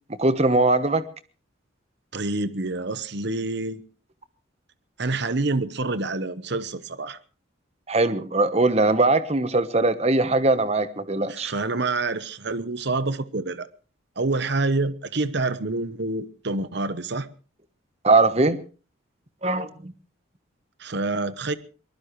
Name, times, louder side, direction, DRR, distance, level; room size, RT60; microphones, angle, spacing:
voice 1, 0.2-1.0 7.9-11.5 18.0-18.6 19.4-19.9, right 2 dB, 30° right, 1.1 m, -21 dB
voice 2, 2.1-3.8 5.0-7.2 11.3-13.7 14.2-17.3 20.8-21.5, right 3 dB, 55° right, 1.0 m, -27 dB
22.5 x 20.0 x 3.2 m
head